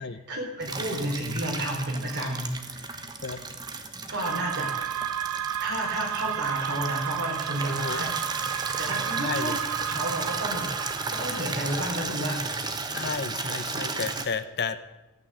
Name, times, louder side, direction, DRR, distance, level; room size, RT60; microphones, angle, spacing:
voice 1, 0.3-3.0 4.1-4.7 5.6-8.1 8.5-12.5, right 1 dB, 50° right, -1 dB, 4.2 m, -32 dB
Water tap faucet / Liquid, 0.6-14.3, right 3 dB, 20° right, 1.1 m, -34 dB
sound 1, 4.2-11.9, right 10 dB, 80° right, 0.4 m, -32 dB
voice 2, 7.7-8.1 9.2-9.6 12.9-14.8, left 5 dB, 50° left, 11 dB, 0.8 m, -32 dB
13.5 x 9.4 x 7.6 m, 1.0 s
head